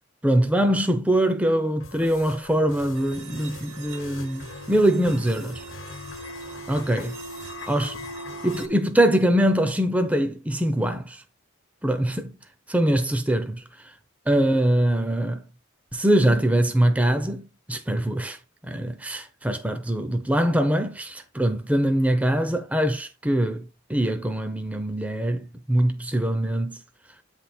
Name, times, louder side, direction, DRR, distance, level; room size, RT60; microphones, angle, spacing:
voice 1, 0.2-5.6 6.7-7.2 7.7-8.0 8.4-11.2 11.8-12.3 12.7-13.6 14.3-15.4 15.9-17.4 17.7-18.4 18.6-26.8, right 1 dB, 5° right, 0.5 m, -23 dB
sound 1, 1.8-8.7, left 4 dB, 65° left, 1.0 m, -42 dB
sound 2, 3.0-8.7, right 3 dB, 60° right, 1.0 m, -41 dB
8.4 x 3.5 x 4.2 m
head